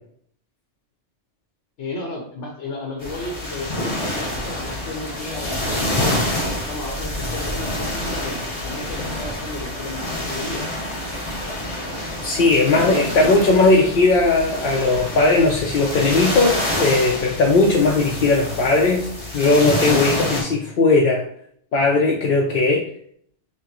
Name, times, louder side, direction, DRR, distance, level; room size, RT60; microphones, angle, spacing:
voice 1, 1.8-6.1 6.7-10.7 13.0-13.4, left 2 dB, 80° left, 0 dB, 1.2 m, -33 dB
sound 1, 3.0-20.4, left 1 dB, 25° left, 0.9 m, -27 dB
voice 2, 12.2-21.2 21.7-22.8, left 3 dB, 60° left, -1 dB, 0.7 m, -18 dB
5.7 x 2.1 x 2.9 m, 0.64 s
omnidirectional pair, 1.2 m